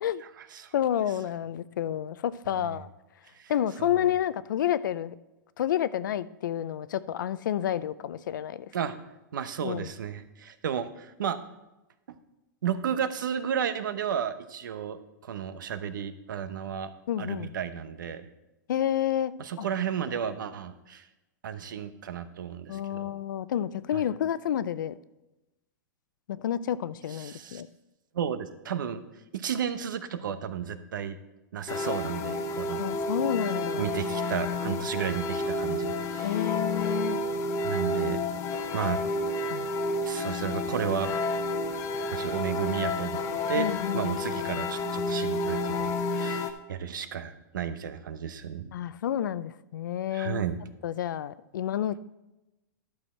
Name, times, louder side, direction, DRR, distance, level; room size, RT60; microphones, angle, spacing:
voice 1, 0.2-0.7 2.6-2.8 3.3-3.5 3.8-4.1 8.7-9.0 9.3-11.4 12.6-16.9 17.2-18.3 19.4-21.1 21.4-23.2 23.9-24.0 27.1-27.6 28.1-29.0 29.3-31.2 31.5-32.8 33.8-36.5 37.6-38.2 38.7-39.0 40.0-41.1 42.1-43.7 43.9-48.7 50.1-50.6, right 8 dB, 85° right, 12 dB, 0.8 m, -33 dB
voice 2, 0.7-2.9 3.5-5.2 5.6-8.7 9.6-9.9 17.1-17.5 18.7-19.7 22.7-25.0 26.3-27.7 32.8-33.9 36.2-37.2 39.5-39.7 43.6-44.2 48.7-50.4 50.8-52.0, left 10 dB, 80° left, 17 dB, 0.5 m, -30 dB
sound 1, 31.7-46.5, left 2 dB, 30° left, 0.8 m, -30 dB
11.5 x 6.4 x 4.3 m, 0.98 s
hypercardioid pair, 135°, 10 cm